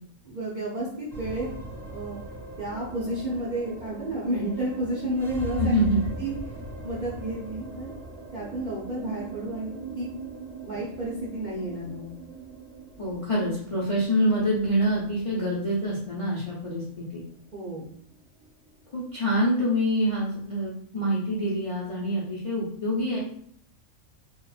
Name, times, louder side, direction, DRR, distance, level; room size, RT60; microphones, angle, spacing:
voice 1, 0.2-1.5 1.8-2.2 2.6-5.7 6.2-6.3 6.8-7.9 8.3-10.1 10.6-12.1 17.5-17.8, right 1 dB, 60° right, -6 dB, 0.5 m, -31 dB
sound 1, 1.1-19.6, right 2 dB, 15° right, 0.9 m, -40 dB
voice 2, 5.6-6.0 13.0-17.2 18.9-23.2, equal, 60° left, -6 dB, 0.3 m, -26 dB
2.8 x 2.2 x 2.3 m, 0.62 s
omnidirectional pair, 1.4 m